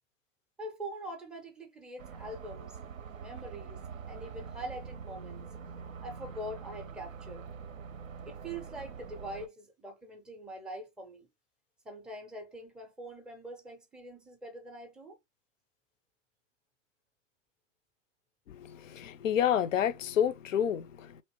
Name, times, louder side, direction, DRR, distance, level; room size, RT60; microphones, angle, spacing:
voice 1, 0.6-2.8 3.2-5.4 6.0-7.5 8.2-11.3 11.8-15.2, right 1 dB, ahead, 0.4 m, -43 dB
sound 1, 2.0-9.5, right 6 dB, 90° right, 0.6 m, -45 dB
voice 2, 18.5-21.2, left 9 dB, 85° left, 0.5 m, -29 dB
3.1 x 2.8 x 2.9 m
hypercardioid pair, 115°, 38 cm